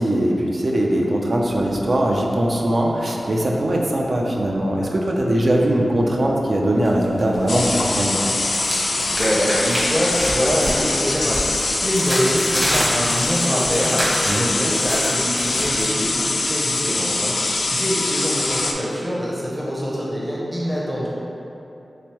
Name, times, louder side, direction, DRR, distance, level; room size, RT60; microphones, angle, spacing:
voice 1, 0.0-8.2 14.3-14.4, right 1 dB, 55° right, -1 dB, 0.4 m, -20 dB
sound 1, 1.3-17.3, equal, 80° right, 1.4 m, -41 dB
sound 2, 6.8-7.7 8.0-15.8, equal, 25° right, 1.0 m, -28 dB
sound 3, 7.5-18.7, left 2 dB, 70° left, 0.3 m, -23 dB
voice 2, 8.9-21.1, equal, 5° right, -6 dB, 0.6 m, -24 dB
3.4 x 3.3 x 2.9 m, 2.9 s
wide cardioid pair, 85°, 0 cm